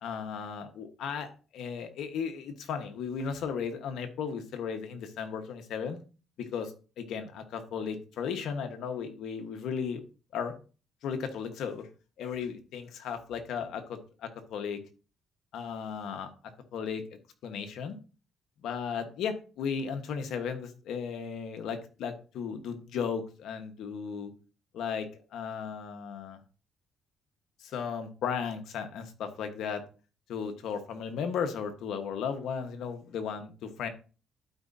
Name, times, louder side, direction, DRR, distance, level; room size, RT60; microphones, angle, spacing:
voice 1, 0.0-6.0 6.4-10.0 10.3-10.5 11.0-11.9 12.2-14.8 15.5-16.3 16.7-18.0 18.6-24.3 24.7-26.4 27.6-29.8 30.3-33.9, left 6 dB, 80° left, 6 dB, 1.3 m, -35 dB
12.0 x 5.0 x 2.7 m, 0.36 s
cardioid pair, 85°, 0 cm